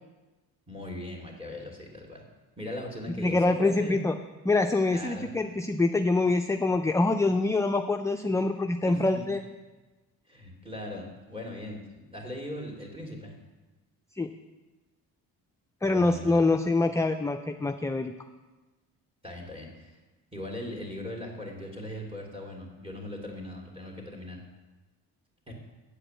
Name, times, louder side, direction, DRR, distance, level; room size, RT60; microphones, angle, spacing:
voice 1, 0.7-2.2 2.6-4.0 4.9-5.3 8.9-9.3 10.3-11.8 12.1-13.3 15.8-16.4 19.2-20.0 20.3-24.4 25.5-25.6, left 1 dB, 15° right, 0 dB, 2.6 m, -39 dB
voice 2, 3.2-4.1 4.4-9.4 14.2-14.3 15.8-18.1, left 2 dB, 10° left, 6 dB, 0.3 m, -25 dB
8.7 x 4.9 x 7.6 m, 1.2 s
supercardioid pair, 70°, 40 cm